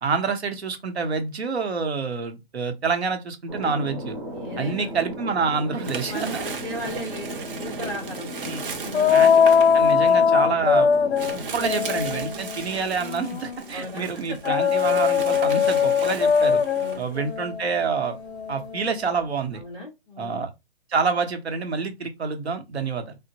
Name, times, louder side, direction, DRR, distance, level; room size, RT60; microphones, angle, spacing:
voice 1, 0.0-4.2 4.6-6.5 8.4-8.6 9.1-9.5 9.7-10.9 11.3-16.6 17.0-18.2 18.5-19.6 20.2-20.5 20.9-23.2, right 5 dB, 85° right, 1.0 m, -27 dB
Thunder, 3.5-12.8, equal, 25° right, 0.9 m, -36 dB
sound 1, 4.1-5.1 5.5-19.6, right 5 dB, 55° right, 0.8 m, -37 dB
voice 2, 4.3-4.9 6.1-9.2 13.7-14.7 16.7-17.0 19.5-20.4, left 1 dB, 10° left, 0.4 m, -37 dB
sound 2, 8.9-13.6 14.4-19.1, left 6 dB, 90° left, 0.5 m, -21 dB
3.7 x 2.1 x 2.8 m
hypercardioid pair, 165°, 31 cm